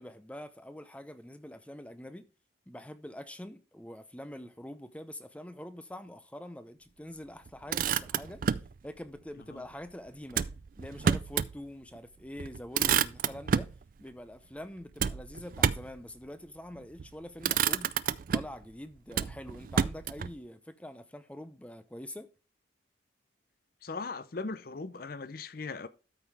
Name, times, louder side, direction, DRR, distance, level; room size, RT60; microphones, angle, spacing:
voice 1, 0.0-2.2 2.7-8.5 8.8-10.5 10.8-13.7 14.0-17.9 18.3-22.3, left 1 dB, 5° left, 0.6 m, -45 dB
Motor vehicle (road), 7.5-8.7 10.3-11.5 11.9-12.0 12.4-13.8 15.0-16.0 16.8-17.1 17.4-18.6 19.1-20.3, right 7 dB, 45° right, 0.3 m, -29 dB
voice 2, 23.8-25.9, left 4 dB, 50° left, 0.6 m, -39 dB
13.0 x 5.5 x 3.4 m
head